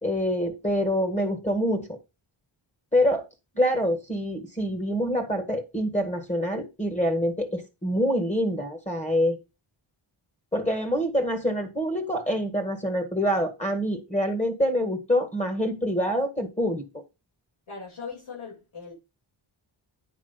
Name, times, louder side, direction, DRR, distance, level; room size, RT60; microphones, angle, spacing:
voice 1, 0.0-2.0 2.9-3.3 3.6-9.4 10.5-16.8, equal, 15° left, 1.7 m, -26 dB
voice 2, 17.7-18.9, left 5 dB, 75° left, 6.4 m, -39 dB
9.9 x 4.6 x 5.7 m
wide cardioid pair, 135°, 49 cm